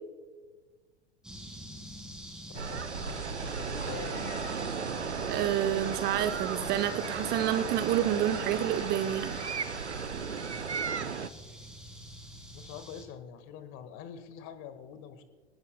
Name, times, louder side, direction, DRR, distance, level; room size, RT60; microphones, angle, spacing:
sound 1, 1.2-13.0, equal, ahead, 3.0 m, -46 dB
voice 1, 2.5-4.3 12.5-15.2, left 8 dB, 40° left, 10 dB, 1.7 m, -45 dB
sound 2, 2.5-11.3, right 5 dB, 85° right, 0.8 m, -35 dB
sound 3, 3.4-4.7 5.9-7.5 8.4-9.5, left 2 dB, 70° left, 4.5 m, -49 dB
voice 2, 5.3-9.4, right 11 dB, 30° right, 10 dB, 0.7 m, -29 dB
25.5 x 18.5 x 2.2 m, 1.4 s
figure-of-eight pair, 90°, 33 cm